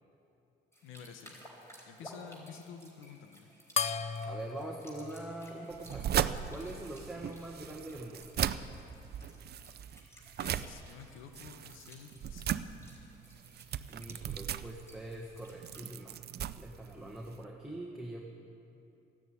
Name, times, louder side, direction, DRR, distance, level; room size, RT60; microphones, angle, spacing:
sound 1, 0.7-15.9, equal, 15° left, 4.4 m, -57 dB
voice 1, 0.8-1.5 1.9-3.5 10.4-12.8, left 7 dB, 90° left, 7 dB, 1.0 m, -50 dB
sound 2, 3.8-6.6, left 5 dB, 35° left, 0.5 m, -37 dB
voice 2, 4.2-8.3 13.9-16.3 16.6-18.2, right 1 dB, 5° right, -1 dB, 1.5 m, -44 dB
sound 3, 5.7-17.4, right 10 dB, 55° right, 0.5 m, -37 dB
14.0 x 9.7 x 9.2 m, 2.7 s
cardioid pair, 90°, 20 cm